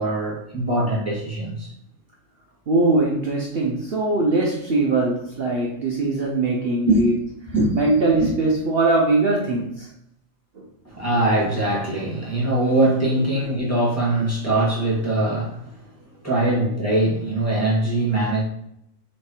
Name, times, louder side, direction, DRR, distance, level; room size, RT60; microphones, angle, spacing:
voice 1, 0.0-1.7 6.8-7.0 7.5-7.8 10.8-15.7 16.2-18.4, right 2 dB, 10° left, -5 dB, 2.0 m, -22 dB
voice 2, 2.7-7.1 7.7-9.9, right 2 dB, 50° right, -1 dB, 1.0 m, -21 dB
6.6 x 3.3 x 4.5 m, 0.77 s
omnidirectional pair, 1.4 m